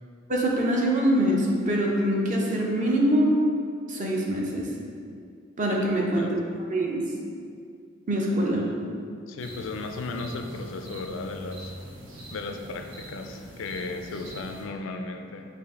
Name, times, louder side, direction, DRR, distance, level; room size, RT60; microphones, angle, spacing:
voice 1, 0.3-3.3 3.9-4.7 5.6-6.3 6.7-7.0 8.1-8.6, right 1 dB, 40° right, -2 dB, 0.6 m, -24 dB
voice 2, 9.3-11.7 12.3-15.5, left 3 dB, 75° left, 5 dB, 0.4 m, -35 dB
sound 1, 9.4-14.6, equal, 75° right, 0.9 m, -43 dB
5.0 x 2.5 x 3.6 m, 2.3 s
head